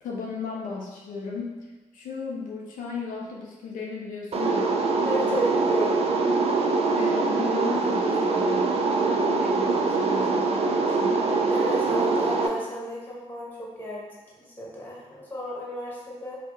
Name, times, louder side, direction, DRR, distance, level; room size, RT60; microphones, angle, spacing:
voice 1, 0.0-1.6 1.9-4.8 6.9-11.2, left 4 dB, 85° left, -3 dB, 0.4 m, -35 dB
sound 1, 4.3-12.5, right 3 dB, 50° right, 0.4 m, -23 dB
voice 2, 5.0-6.0 11.5-14.1 14.4-16.4, equal, 15° left, -5 dB, 1.2 m, -33 dB
2.7 x 2.0 x 3.5 m, 1.3 s
supercardioid pair, 50°, 13 cm